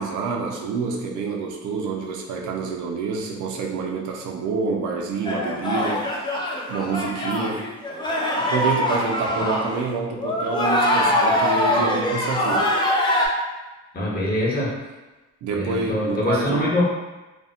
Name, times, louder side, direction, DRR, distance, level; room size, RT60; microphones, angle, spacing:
voice 1, 0.0-6.4 6.7-7.7 8.5-12.7 15.4-16.6, right 4 dB, 80° right, 1 dB, 0.5 m, -27 dB
sound 1, 5.2-9.8 10.1-13.3, left 1 dB, 15° left, 0.4 m, -23 dB
voice 2, 13.9-14.8 15.5-16.8, left 1 dB, 30° left, -5 dB, 0.9 m, -24 dB
2.5 x 2.1 x 2.4 m, 1.1 s
cardioid pair, 90°, 30 cm